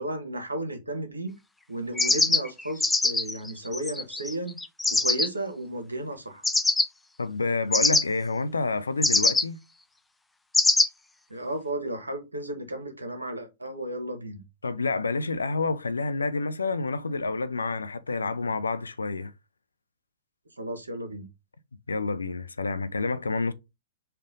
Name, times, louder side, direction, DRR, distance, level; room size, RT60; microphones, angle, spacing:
voice 1, 0.0-1.3 1.7-4.6 4.9-6.4 11.3-14.4 20.6-21.3, right 1 dB, 80° right, 1.1 m, -34 dB
sound 1, 2.0-5.3 6.4-6.9 7.7-8.0 9.0-9.4 10.5-10.9, left 2 dB, 5° left, 0.3 m, -23 dB
voice 2, 7.2-9.6 14.6-19.3 21.9-23.5, left 3 dB, 75° left, 0.5 m, -28 dB
4.5 x 2.4 x 3.8 m
figure-of-eight pair, 105°, 0 cm